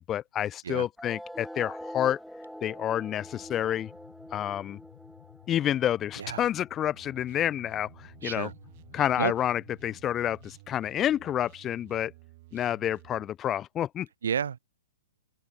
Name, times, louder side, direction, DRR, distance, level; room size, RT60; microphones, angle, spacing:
voice 1, 0.0-2.2 2.6-3.9 4.3-4.8 5.5-8.5 8.9-12.1 12.5-14.1, left 11 dB, 20° left, 0.3 m, -29 dB
sound 1, 1.0-8.0, equal, ahead, 0.9 m, -45 dB
sound 2, 3.2-10.6, left 20 dB, 40° left, 4.8 m, -55 dB
sound 3, 6.9-13.3, right 20 dB, 40° right, 3.1 m, -53 dB
voice 2, 8.2-8.5 9.2-9.3 14.2-14.6, right 7 dB, 60° right, 0.9 m, -30 dB
open air
figure-of-eight pair, 115°, 0 cm